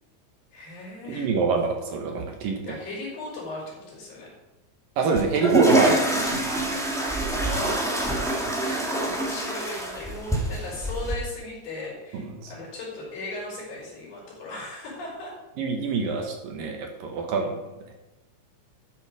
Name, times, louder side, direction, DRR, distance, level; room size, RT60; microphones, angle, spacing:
voice 1, 0.5-1.3 2.6-4.4 7.4-15.3, left 2 dB, 70° left, -5 dB, 6.2 m, -37 dB
voice 2, 1.1-2.8 5.0-7.2 8.7-9.0 12.1-12.5 15.6-17.6 17.9-18.0, right 5 dB, 65° right, 3 dB, 2.6 m, -26 dB
sound 1, 5.1-11.1, right 1 dB, ahead, 0.7 m, -26 dB
13.0 x 9.0 x 4.9 m, 1.0 s
omnidirectional pair, 5.0 m